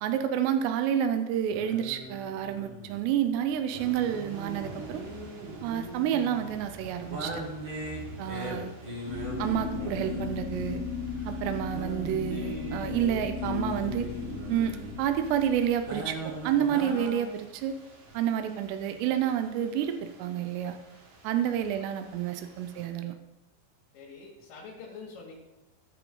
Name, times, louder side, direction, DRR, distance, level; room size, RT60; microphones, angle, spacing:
voice 1, 0.0-5.0 5.6-7.3 8.2-8.7 9.4-10.8 11.3-14.1 14.5-17.8 18.1-20.8 21.2-23.2, right 9 dB, 85° right, 8 dB, 2.4 m, -29 dB
sound 1, 1.5-17.3, right 1 dB, 40° right, 2.1 m, -40 dB
sound 2, 3.7-22.9, right 1 dB, 65° right, 4.0 m, -50 dB
sound 3, 9.1-17.0, left 5 dB, 55° left, 2.9 m, -36 dB
voice 2, 21.5-21.9 22.7-22.9 23.9-25.4, left 4 dB, 80° left, -5 dB, 4.4 m, -46 dB
17.5 x 5.9 x 3.8 m, 1.0 s
omnidirectional pair, 5.7 m